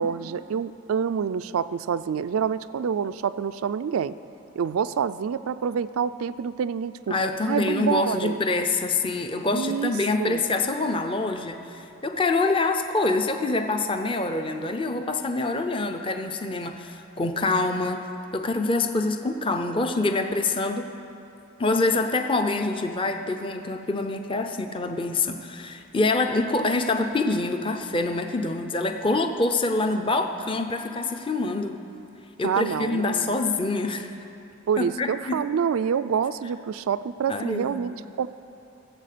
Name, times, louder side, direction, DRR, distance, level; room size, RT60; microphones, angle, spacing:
voice 1, 0.0-4.1 4.6-7.1 7.5-8.4 9.5-9.9 10.2-10.4 32.4-33.4 34.7-38.3, right 7 dB, 80° right, 13 dB, 0.4 m, -27 dB
voice 2, 7.1-18.0 18.3-20.9 21.6-31.8 32.4-34.1 34.8-35.4 37.3-37.9, left 3 dB, 25° left, 5 dB, 0.6 m, -26 dB
18.0 x 8.2 x 6.7 m, 2.7 s
head